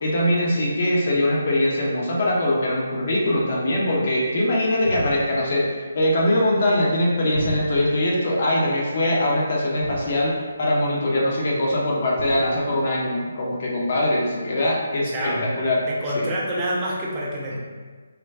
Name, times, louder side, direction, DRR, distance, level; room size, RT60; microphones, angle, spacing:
voice 1, 0.0-15.9 16.1-16.3, left 1 dB, 40° left, -4 dB, 0.6 m, -22 dB
sound 1, 4.8-5.7 7.3-8.2 9.8-10.5 12.2-12.8, right 1 dB, 90° right, 0.4 m, -34 dB
voice 2, 15.0-15.5 15.9-17.6, equal, 15° right, -6 dB, 0.4 m, -27 dB
2.3 x 2.2 x 3.2 m, 1.5 s
figure-of-eight pair, 145°, 0 cm